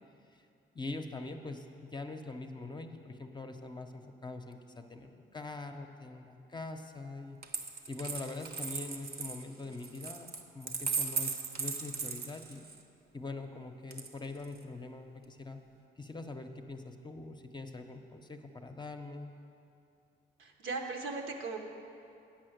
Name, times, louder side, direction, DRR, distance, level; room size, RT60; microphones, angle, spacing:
voice 1, 0.7-12.6 13.1-15.6 16.0-19.3, left 3 dB, 20° left, 5 dB, 0.7 m, -43 dB
Coin (dropping), 7.4-12.8 13.9-14.6, right 5 dB, 50° right, 0.8 m, -37 dB
voice 2, 20.4-21.6, right 3 dB, 85° right, 2 dB, 1.1 m, -38 dB
8.5 x 5.5 x 7.9 m, 2.6 s
cardioid pair, 90°, 20 cm